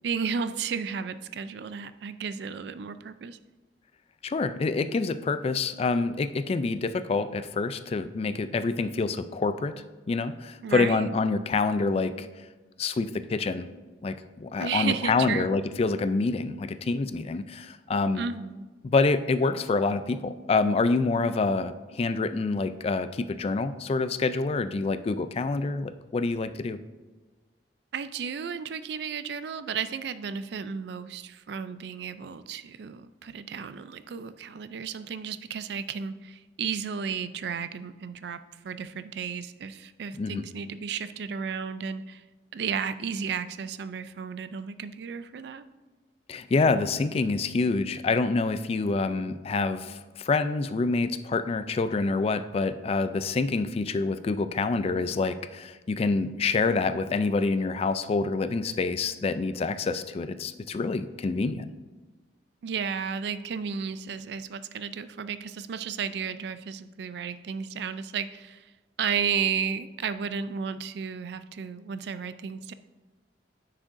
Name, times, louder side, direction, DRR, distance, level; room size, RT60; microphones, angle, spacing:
voice 1, 0.0-3.4 10.6-11.1 14.6-15.5 18.1-18.7 27.9-42.2 42.5-45.7 62.6-68.7 69.0-72.7, right 6 dB, 65° right, 13 dB, 0.4 m, -33 dB
voice 2, 4.2-12.3 12.8-13.7 14.0-18.2 18.8-26.8 40.2-40.4 46.3-61.7, left 3 dB, 35° left, 12 dB, 0.3 m, -27 dB
9.8 x 6.3 x 2.6 m, 1.2 s
head